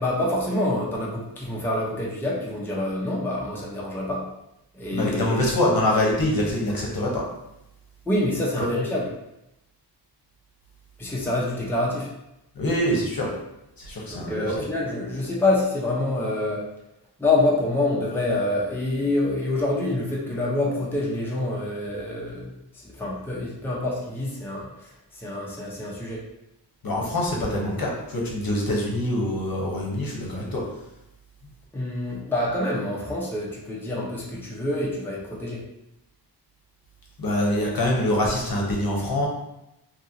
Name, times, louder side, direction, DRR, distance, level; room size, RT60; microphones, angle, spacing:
voice 1, 0.0-4.3 4.7-5.5 8.1-9.1 11.0-12.1 14.1-16.6 17.2-26.2 31.7-35.6, left 2 dB, 5° left, -5 dB, 0.6 m, -26 dB
voice 2, 4.9-7.2 8.6-8.7 12.6-13.3 13.8-14.5 26.8-30.6 37.2-39.3, left 1 dB, 55° left, -3 dB, 0.8 m, -24 dB
2.8 x 2.6 x 2.6 m, 0.87 s
wide cardioid pair, 85°, 41 cm